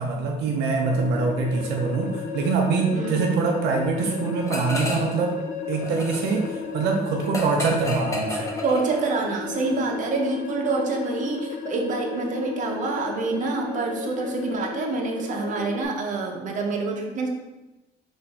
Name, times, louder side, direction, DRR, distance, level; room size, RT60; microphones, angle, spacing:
voice 1, 0.0-5.4 5.7-8.6, right 4 dB, 85° right, 1 dB, 0.6 m, -24 dB
sound 1, 0.8-15.8, left 6 dB, 55° left, 0.5 m, -34 dB
voice 2, 2.9-3.3 8.6-17.3, right 3 dB, 50° right, 2 dB, 0.8 m, -27 dB
sound 2, 4.5-5.2 5.5-9.3, left 1 dB, 20° left, 0.7 m, -32 dB
4.2 x 2.6 x 4.2 m, 1.1 s
cardioid pair, 110°, 17 cm